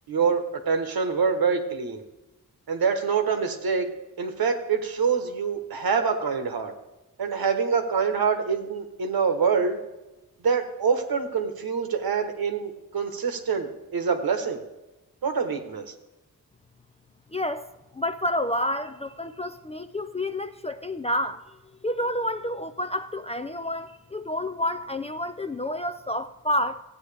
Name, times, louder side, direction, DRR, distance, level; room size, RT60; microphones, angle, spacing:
voice 1, 0.1-2.0 2.7-3.9 4.2-6.7 7.2-9.8 10.4-14.6 15.2-15.9, right 5 dB, 75° right, 1.2 m, -25 dB
voice 2, 17.3-17.7 17.9-21.4 21.8-26.8, left 1 dB, 20° left, 0.3 m, -29 dB
15.0 x 9.1 x 3.4 m
wide cardioid pair, 135°, 37 cm